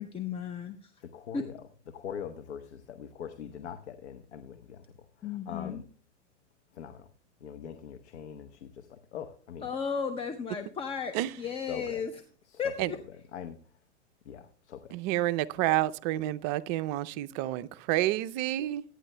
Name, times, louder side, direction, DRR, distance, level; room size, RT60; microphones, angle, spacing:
voice 1, 0.0-0.9 1.3-1.4 5.2-5.8 9.6-12.1 12.6-13.0, left 6 dB, 15° left, 7 dB, 0.6 m, -34 dB
voice 2, 1.0-5.8 6.7-7.1 7.4-9.7 11.7-12.0 12.5-12.7 13.1-13.6 14.2-14.9, left 8 dB, 65° left, 8 dB, 1.0 m, -43 dB
voice 3, 14.9-18.8, right 15 dB, 40° right, 13 dB, 0.6 m, -29 dB
23.0 x 9.6 x 2.2 m, 0.43 s
hypercardioid pair, 105°, 36 cm